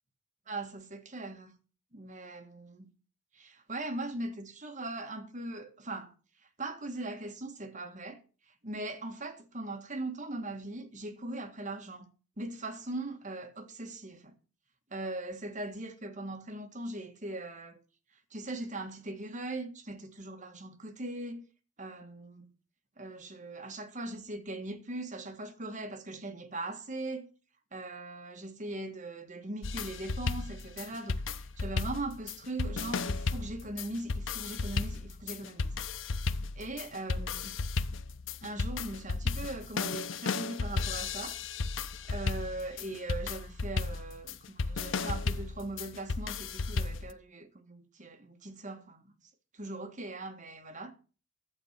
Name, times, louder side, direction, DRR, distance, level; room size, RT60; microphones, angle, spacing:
voice 1, 0.5-1.5 1.9-2.9 3.3-6.1 6.6-8.2 8.6-12.1 12.4-14.3 14.9-17.8 18.3-21.4 21.8-22.5 23.0-27.3 27.7-35.7 36.6-37.6 38.4-41.4 42.1-49.0 49.5-50.9, right 2 dB, 35° right, 1.7 m, -40 dB
sound 1, 29.6-47.1, left 4 dB, 65° left, 0.7 m, -34 dB
11.5 x 7.9 x 5.8 m
head